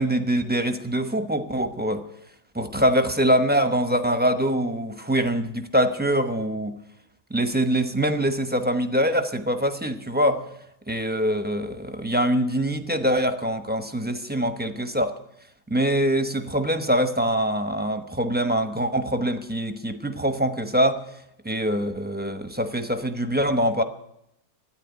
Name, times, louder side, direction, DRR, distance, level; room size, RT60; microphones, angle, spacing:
voice 1, 0.0-2.0 2.5-6.7 7.3-10.4 10.9-15.1 15.7-21.0 21.4-23.8, equal, 10° right, 8 dB, 0.8 m, -24 dB
13.5 x 9.7 x 9.6 m, 0.78 s
omnidirectional pair, 1.6 m